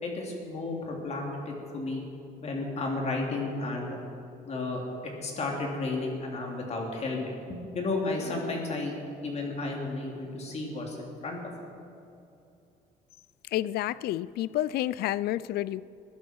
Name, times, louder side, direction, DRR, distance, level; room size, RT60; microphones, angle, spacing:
voice 1, 0.0-2.0 2.4-4.0 4.5-4.8 5.2-8.9 9.2-11.4, left 3 dB, 40° left, 0 dB, 3.4 m, -33 dB
voice 2, 13.5-15.8, left 14 dB, 70° left, 19 dB, 0.4 m, -29 dB
21.5 x 11.5 x 4.7 m, 2.7 s
cardioid pair, 110°, 17 cm